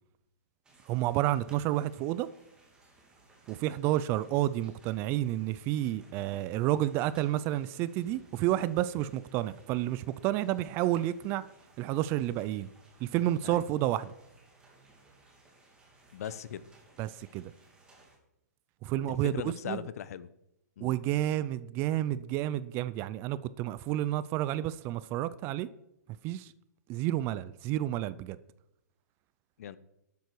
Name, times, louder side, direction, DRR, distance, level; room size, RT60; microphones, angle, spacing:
sound 1, 0.6-18.2, right 2 dB, 10° right, 2.5 m, -61 dB
voice 1, 0.9-2.3 3.5-11.4 11.8-12.7 13.0-14.1 17.0-17.5 18.8-19.8 20.8-25.7 26.2-26.5 26.9-28.4, right 14 dB, 25° right, 0.4 m, -30 dB
voice 2, 16.1-16.6 19.1-20.3 20.8-21.0 29.6-29.8, left 9 dB, 60° left, 0.9 m, -39 dB
12.5 x 9.3 x 4.7 m
hypercardioid pair, 155°, 9 cm